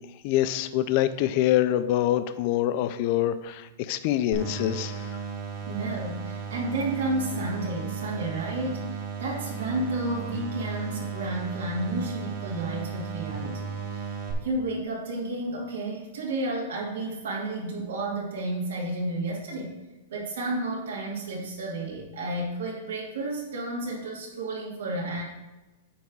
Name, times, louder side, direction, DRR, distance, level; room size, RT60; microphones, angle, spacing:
voice 1, 0.2-5.1, left 12 dB, 35° left, 12 dB, 0.4 m, -25 dB
sound 1, 4.3-14.3, right 6 dB, 30° right, 1.9 m, -35 dB
voice 2, 5.6-14.1 14.4-19.8 20.1-25.2, right 2 dB, 80° right, -3 dB, 2.6 m, -31 dB
9.4 x 3.5 x 6.2 m, 1.1 s
supercardioid pair, 170°, 0 cm